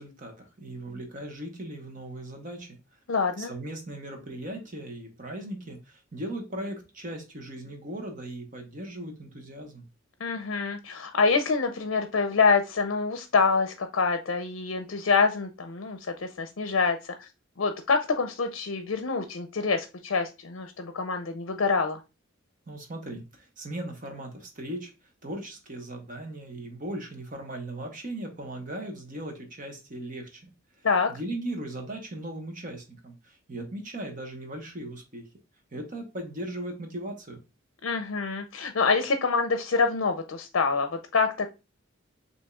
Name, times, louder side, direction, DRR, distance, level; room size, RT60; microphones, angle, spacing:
voice 1, 0.0-2.8 3.4-9.8 22.7-24.9 25.2-30.5 30.8-35.3 35.7-37.4, right 1 dB, 40° right, 1.1 m, -38 dB
voice 2, 3.1-3.5 10.2-17.3 17.6-22.0 30.8-31.1 37.8-41.5, left 4 dB, 70° left, 0.5 m, -26 dB
7.0 x 2.8 x 2.3 m
head